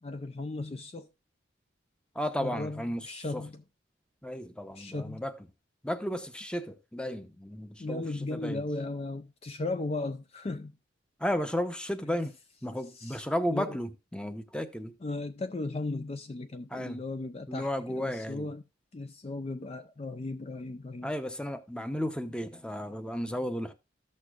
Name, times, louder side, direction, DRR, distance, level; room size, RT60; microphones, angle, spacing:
voice 1, 0.0-1.1 2.4-3.6 4.7-5.2 7.8-10.8 12.1-12.2 12.9-13.8 15.0-18.6 18.9-21.1, left 2 dB, 35° left, 0.4 m, -36 dB
voice 2, 2.1-3.1 3.3-3.4 4.2-5.3 5.8-8.0 8.3-8.6 11.2-12.3 12.6-14.9 16.7-17.0 17.5-18.5 21.0-23.7, equal, 5° left, 0.7 m, -33 dB
14.0 x 6.5 x 2.4 m
head